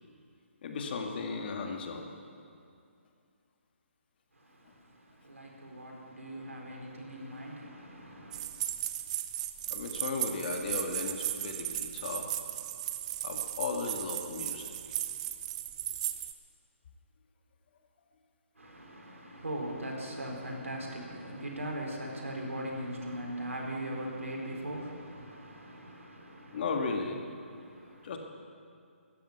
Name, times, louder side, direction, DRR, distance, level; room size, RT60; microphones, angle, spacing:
voice 1, 0.6-2.1 9.7-12.3 13.2-14.7 26.5-27.2 28.0-28.2, left 4 dB, 45° left, 3 dB, 2.0 m, -35 dB
voice 2, 4.3-8.5 18.6-26.7 27.5-28.2, right 1 dB, 85° right, -1 dB, 4.2 m, -40 dB
sound 1, 8.3-16.3, right 13 dB, 30° right, 0.7 m, -36 dB
14.0 x 9.9 x 9.5 m, 2.4 s
figure-of-eight pair, 145°, 7 cm